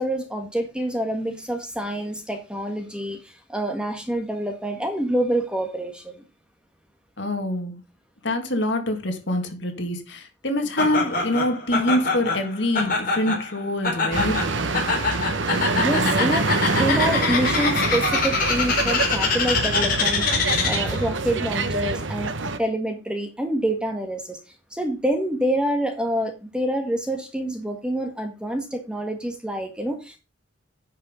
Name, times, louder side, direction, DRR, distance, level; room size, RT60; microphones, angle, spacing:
voice 1, 0.0-6.2 15.5-22.3 22.6-24.4 24.7-30.2, right 1 dB, 5° right, 1.5 m, -27 dB
voice 2, 7.2-7.8 8.2-14.4, left 1 dB, 65° left, 2.1 m, -25 dB
Laughter, 10.8-21.0, left 4 dB, 45° left, 4.2 m, -25 dB
sound 1, 14.1-22.6, right 3 dB, 70° right, 1.0 m, -25 dB
10.0 x 5.6 x 5.0 m
head